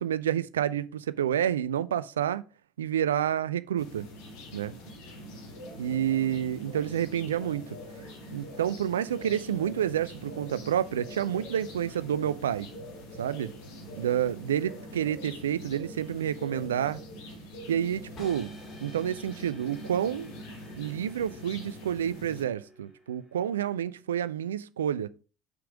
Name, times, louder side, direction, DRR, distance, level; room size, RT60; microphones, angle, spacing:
voice 1, 0.0-2.4 2.8-4.1 4.5-4.7 5.8-7.8 8.3-12.7 13.2-13.5 14.0-17.0 17.7-18.5 18.8-20.3 20.8-25.1, right 10 dB, 75° right, 0.3 m, -29 dB
sound 1, 3.8-22.5, equal, 60° left, 1.7 m, -44 dB
sound 2, 18.2-24.1, left 1 dB, 35° left, 2.8 m, -53 dB
5.8 x 5.2 x 4.7 m
figure-of-eight pair, 60°, 0 cm